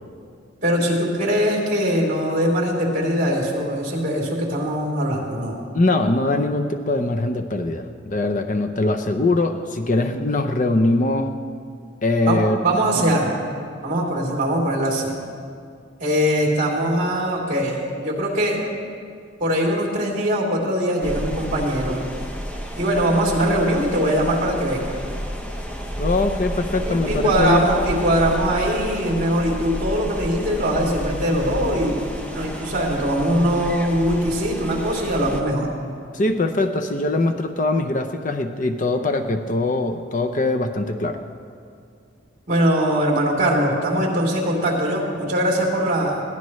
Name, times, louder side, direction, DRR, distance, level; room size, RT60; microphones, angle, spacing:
voice 1, 0.6-5.6 12.2-13.4 13.8-15.1 16.0-18.6 19.4-22.0 22.7-25.0 26.8-31.9 32.3-35.7 42.5-46.2, equal, 40° right, -2 dB, 3.5 m, -21 dB
voice 2, 5.7-11.4 12.0-12.6 13.0-13.1 26.0-27.7 36.1-41.2, left 2 dB, 40° left, 5 dB, 0.7 m, -22 dB
sound 1, 21.0-35.4, equal, 5° left, 0.9 m, -31 dB
21.5 x 16.5 x 3.2 m, 2.2 s
head